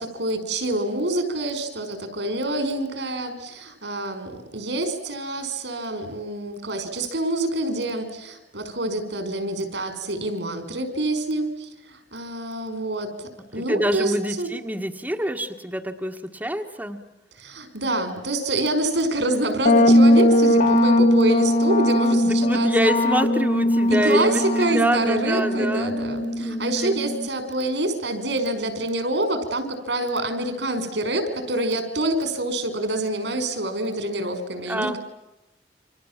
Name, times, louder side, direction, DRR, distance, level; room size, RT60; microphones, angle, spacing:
voice 1, 0.0-14.5 17.4-22.9 23.9-35.0, right 1 dB, 85° right, 9 dB, 5.4 m, -26 dB
voice 2, 13.5-17.0 22.2-26.9 34.7-35.0, equal, 10° right, 3 dB, 1.7 m, -26 dB
sound 1, 19.7-27.3, left 1 dB, 50° left, 2.0 m, -20 dB
29.5 x 26.0 x 7.5 m, 0.95 s
head